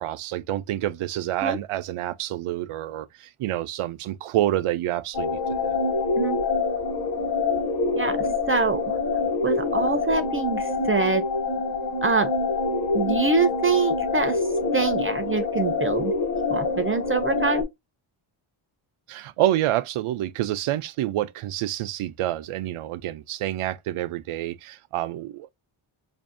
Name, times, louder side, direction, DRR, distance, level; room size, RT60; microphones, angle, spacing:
voice 1, 0.0-5.8 19.1-25.5, right 13 dB, 85° right, 0.5 m, -28 dB
sound 1, 5.1-17.6, left 4 dB, 50° left, 1.1 m, -26 dB
voice 2, 8.0-9.0 9.4-11.2 12.0-12.3 12.9-14.4 14.7-16.1 16.5-17.7, right 4 dB, 30° right, 0.4 m, -24 dB
5.2 x 2.6 x 2.5 m
wide cardioid pair, 125°, 49 cm